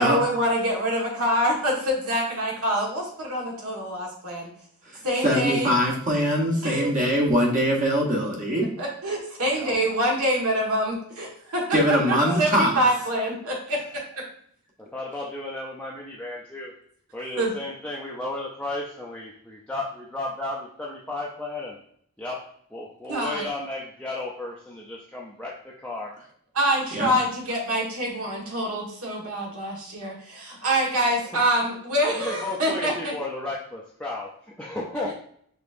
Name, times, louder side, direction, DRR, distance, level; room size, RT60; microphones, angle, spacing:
voice 1, 0.0-4.5 5.0-5.7 6.6-6.9 8.8-11.8 12.1-14.2 17.4-17.5 23.1-23.4 26.5-33.1 34.9-35.1, equal, 75° right, -2 dB, 1.5 m, -26 dB
voice 2, 5.2-8.7 11.7-12.8 26.9-27.1, equal, 35° right, -1 dB, 0.9 m, -22 dB
voice 3, 14.9-16.7 17.1-21.8 22.2-26.1 32.1-35.1, left 2 dB, 5° left, -4 dB, 0.4 m, -34 dB
5.2 x 3.5 x 2.5 m, 0.64 s
head